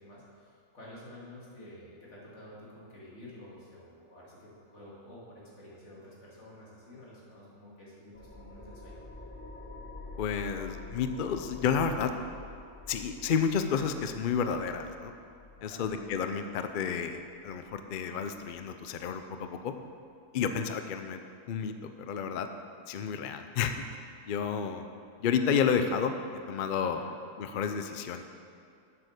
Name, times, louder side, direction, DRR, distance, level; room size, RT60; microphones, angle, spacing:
voice 1, 0.0-9.0 15.6-15.8 26.8-27.1, left 1 dB, 50° left, -6 dB, 2.7 m, -50 dB
sound 1, 8.1-19.2, left 3 dB, 10° left, 0.6 m, -48 dB
voice 2, 10.2-12.1 12.9-15.1 15.6-19.7 20.3-21.2 21.5-22.5 22.9-24.8 25.2-26.1 26.5-27.0 27.4-28.2, left 6 dB, 75° left, 7 dB, 0.4 m, -31 dB
7.8 x 7.5 x 6.5 m, 2.4 s
omnidirectional pair, 1.5 m